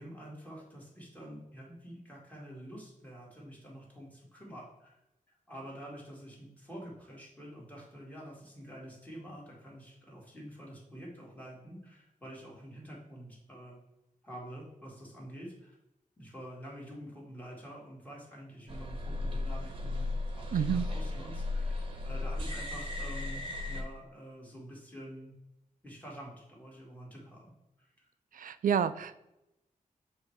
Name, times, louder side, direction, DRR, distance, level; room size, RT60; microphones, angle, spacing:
voice 1, 0.0-5.0 5.3-13.8 14.2-15.8 16.2-25.3 25.8-28.1, equal, 10° left, -4 dB, 2.0 m, -47 dB
sound 1, 18.7-23.8, left 2 dB, 40° right, 1.0 m, -35 dB
voice 2, 20.5-20.9 28.3-29.2, right 8 dB, 75° right, 12 dB, 0.4 m, -29 dB
7.5 x 3.2 x 4.8 m, 0.88 s
wide cardioid pair, 160°, 14 cm